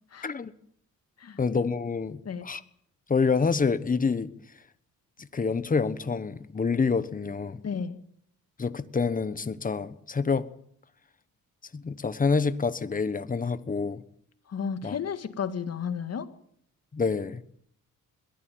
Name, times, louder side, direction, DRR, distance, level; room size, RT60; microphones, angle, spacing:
voice 1, 1.4-2.6 3.1-4.3 5.2-7.6 8.6-10.5 11.7-14.0 14.8-15.0 16.9-17.4, left 5 dB, 25° left, 1.3 m, -27 dB
voice 2, 7.6-8.0 14.5-16.3, left 6 dB, 50° left, 2.0 m, -33 dB
22.0 x 14.5 x 9.4 m
cardioid pair, 115°, 33 cm